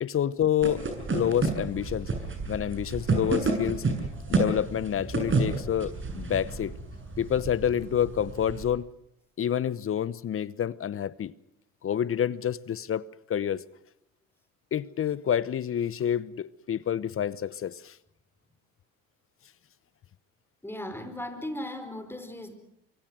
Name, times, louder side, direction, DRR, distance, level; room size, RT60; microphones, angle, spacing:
voice 1, 0.0-2.1 2.5-3.8 4.3-6.7 7.2-8.9 9.4-11.3 11.8-13.6 14.7-18.0, left 9 dB, 35° left, 0.9 m, -28 dB
sound 1, 0.6-8.7, right 3 dB, 30° right, 7.1 m, -30 dB
voice 2, 20.6-22.5, left 1 dB, 5° left, 4.6 m, -37 dB
25.0 x 24.5 x 6.3 m
hypercardioid pair, 75°, 38 cm